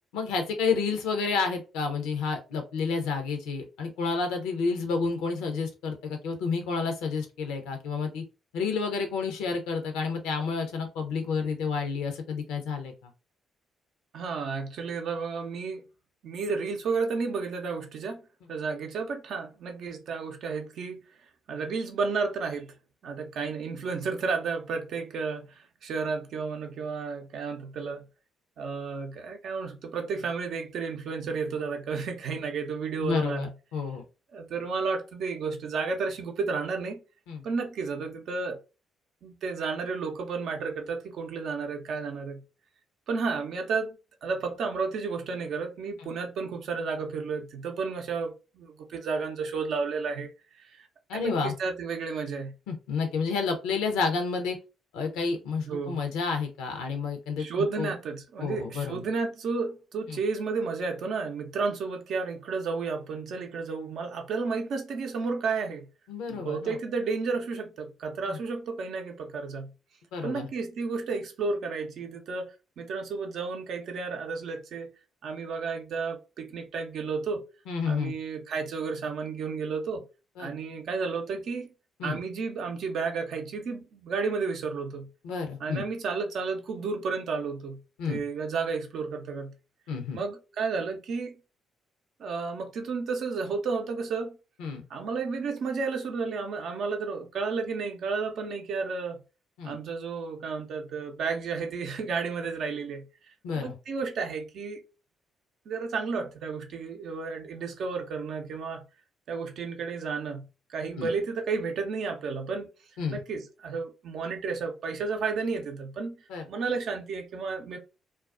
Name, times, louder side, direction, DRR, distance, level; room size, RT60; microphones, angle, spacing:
voice 1, 0.1-8.2 8.5-13.1 33.0-34.0 37.3-37.4 51.1-51.6 52.7-54.6 54.9-57.5 57.8-57.9 58.4-59.0 60.1-60.2 66.1-66.8 68.3-68.4 70.1-70.5 77.7-78.1 80.4-80.5 82.0-82.2 85.2-85.8 88.0-88.2 89.9-90.2 94.6-94.8 99.6-99.8 103.4-103.7 111.0-111.1 113.0-113.2 116.3-116.5, left 5 dB, 75° left, 0.6 m, -30 dB
voice 2, 14.1-15.8 16.2-18.2 18.5-21.0 21.5-22.8 23.0-28.1 28.6-33.5 34.3-37.0 37.4-38.6 39.2-42.4 43.1-44.0 44.2-50.3 50.6-50.9 51.1-52.6 55.7-56.0 57.4-65.9 66.3-69.7 70.2-74.9 75.2-77.4 77.8-80.0 80.4-81.7 82.0-85.1 85.6-87.8 88.1-89.5 90.1-91.4 92.2-94.4 94.9-99.2 99.6-103.1 103.5-104.8 105.7-108.8 109.3-112.7 113.1-116.2 116.5-117.8, right 4 dB, 65° right, 0.5 m, -32 dB
2.3 x 2.2 x 2.4 m
hypercardioid pair, 45°, 0 cm